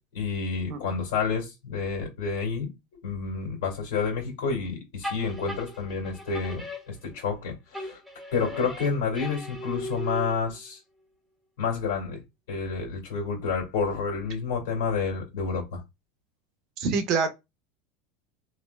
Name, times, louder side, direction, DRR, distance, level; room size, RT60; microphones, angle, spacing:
voice 1, 0.1-2.7 3.0-8.0 8.3-10.8 11.6-12.2 12.5-15.8, left 5 dB, 80° left, 1.9 m, -29 dB
sound 1, 5.0-7.4 7.7-10.6, left 1 dB, ahead, 0.8 m, -38 dB
voice 2, 16.8-17.3, right 5 dB, 50° right, 0.8 m, -26 dB
3.1 x 2.7 x 2.2 m
supercardioid pair, 120°, 0 cm